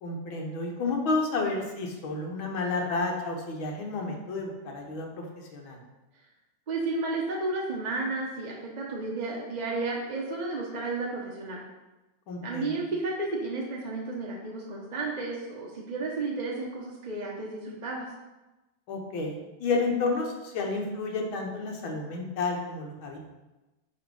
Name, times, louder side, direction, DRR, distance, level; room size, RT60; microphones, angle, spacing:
voice 1, 0.0-5.8 12.3-12.8 18.9-23.2, left 3 dB, 85° left, 1 dB, 2.0 m, -31 dB
voice 2, 6.7-11.6 12.4-18.1, right 3 dB, 35° right, -3 dB, 0.7 m, -32 dB
9.5 x 3.9 x 5.4 m, 1.1 s
omnidirectional pair, 2.1 m